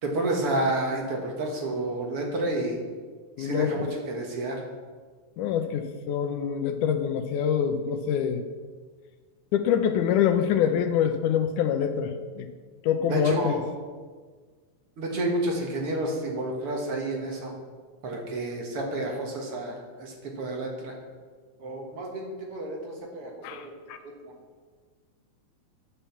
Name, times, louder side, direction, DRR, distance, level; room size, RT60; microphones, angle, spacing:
voice 1, 0.0-2.8 3.4-4.6 13.0-13.6 15.0-17.5 18.0-20.9 21.6-23.7 24.0-24.3, right 1 dB, 55° right, 0 dB, 2.1 m, -30 dB
voice 2, 3.4-3.9 5.4-8.4 9.5-12.5 12.8-13.6 23.4-24.0, left 8 dB, 85° left, 8 dB, 2.2 m, -25 dB
10.0 x 5.7 x 7.1 m, 1.5 s
omnidirectional pair, 3.5 m